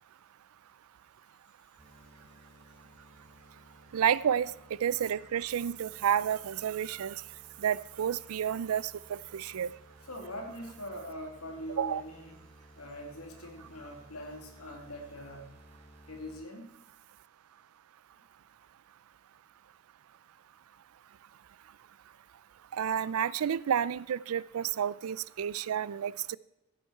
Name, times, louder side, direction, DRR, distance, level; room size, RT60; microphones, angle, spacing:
sound 1, 1.8-16.4, right 1 dB, 30° right, 3.3 m, -57 dB
voice 1, 3.9-4.5 4.8-7.2 7.6-9.7 11.8-12.0 22.7-26.4, right 8 dB, 75° right, 20 dB, 0.4 m, -30 dB
voice 2, 10.0-12.5 12.8-15.6 16.1-16.8, equal, 80° left, 2 dB, 2.6 m, -43 dB
15.5 x 8.3 x 4.5 m, 0.95 s
head